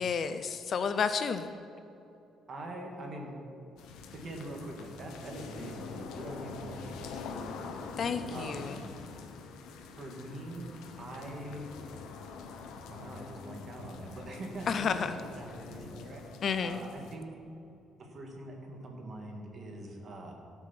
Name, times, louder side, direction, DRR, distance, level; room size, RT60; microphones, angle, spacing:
voice 1, 0.0-1.5 8.0-8.8 14.7-15.1 16.4-16.8, left 6 dB, 40° left, 10 dB, 0.5 m, -31 dB
voice 2, 2.5-3.6 4.1-7.9 8.3-8.9 10.0-10.7 11.0-12.2 12.9-15.0 15.4-16.2 16.6-17.3 18.0-20.3, right 1 dB, 35° right, 1 dB, 2.0 m, -43 dB
Medium rain from porch, 3.8-17.1, left 5 dB, 90° left, 1.0 m, -45 dB
16.5 x 6.2 x 5.9 m, 2.9 s
cardioid pair, 150°, 0 cm